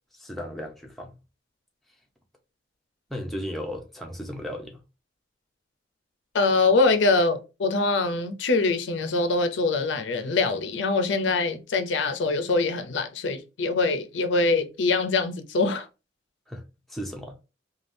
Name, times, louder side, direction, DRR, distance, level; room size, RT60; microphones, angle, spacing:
voice 1, 0.1-1.1 3.1-4.8 16.5-16.6 16.9-17.4, equal, ahead, 0.5 m, -35 dB
voice 2, 6.3-15.9, left 3 dB, 80° left, 0.5 m, -24 dB
3.3 x 2.3 x 2.6 m
head